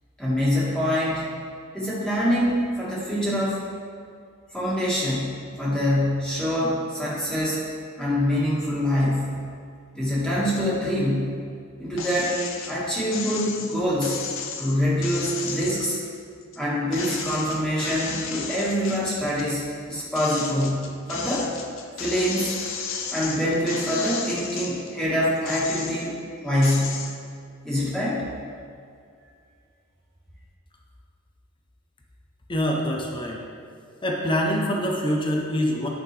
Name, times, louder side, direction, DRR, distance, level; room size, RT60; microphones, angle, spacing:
voice 1, 0.2-1.3 1.7-3.6 4.5-7.6 8.0-9.4 9.9-11.4 11.8-12.4 12.7-14.2 14.6-16.0 16.6-21.5 22.0-22.6 23.1-27.0 27.6-28.3, equal, 5° left, -9 dB, 1.8 m, -25 dB
sound 1, 12.0-12.7 13.1-16.6 16.9-19.5 19.9-24.9 25.4-26.2 26.6-27.2, left 6 dB, 70° left, 0.7 m, -34 dB
voice 2, 32.5-33.4 34.0-35.9, equal, 25° left, 0 dB, 0.8 m, -25 dB
10.0 x 5.8 x 3.4 m, 2.3 s
head